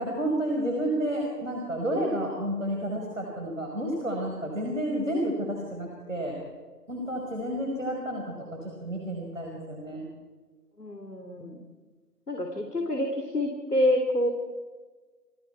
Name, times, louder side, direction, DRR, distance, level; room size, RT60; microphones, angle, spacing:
voice 1, 0.0-6.4 6.9-10.1, right 1 dB, 50° right, 0 dB, 5.0 m, -30 dB
voice 2, 10.8-11.6 12.3-14.3, left 1 dB, 65° left, 4 dB, 3.1 m, -27 dB
29.0 x 24.0 x 4.6 m, 1.4 s
figure-of-eight pair, 175°, 50 cm